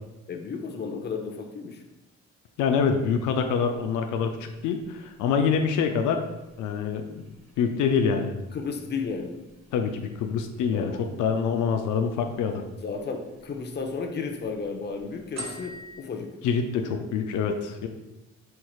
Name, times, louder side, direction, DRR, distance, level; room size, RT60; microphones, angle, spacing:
voice 1, 0.3-1.8 8.5-9.4 10.7-11.0 12.8-16.3, left 5 dB, 35° left, 3 dB, 0.7 m, -33 dB
voice 2, 2.6-6.2 6.6-7.2 7.6-8.4 9.7-12.6 16.4-17.9, left 6 dB, 85° left, 5 dB, 0.5 m, -26 dB
sound 1, 3.0-16.0, right 1 dB, 60° right, 1.2 m, -50 dB
4.6 x 4.4 x 2.3 m, 1.0 s
cardioid pair, 90°, 30 cm